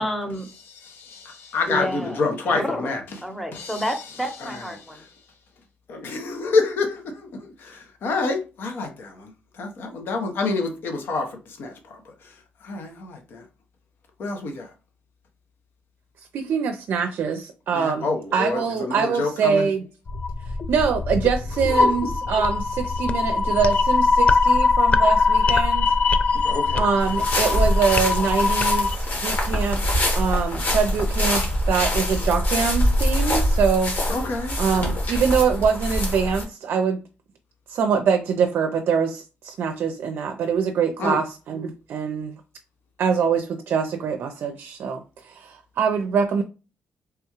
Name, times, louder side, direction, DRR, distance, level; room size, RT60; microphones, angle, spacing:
voice 1, 0.0-0.4 1.7-2.2 2.5-2.9 3.2-5.0, equal, 5° left, 0.8 m, -29 dB
voice 2, 1.5-3.0 4.4-4.7 5.9-9.3 9.6-11.3 11.6-11.7 12.6-13.4 14.2-14.7 17.7-19.7 21.8-21.9 26.4-26.8 34.1-34.6 41.0-41.2, left 3 dB, 75° left, 0.8 m, -27 dB
voice 3, 16.3-19.9 20.7-25.9 26.7-29.8 30.1-33.9 34.6-37.0 37.7-42.3 43.0-46.4, right 6 dB, 75° right, 0.4 m, -24 dB
sound 1, 20.1-29.0, left 4 dB, 35° left, 0.3 m, -21 dB
sound 2, 27.0-36.4, left 1 dB, 60° left, 1.4 m, -24 dB
3.4 x 2.3 x 2.9 m
cardioid pair, 80°, 4 cm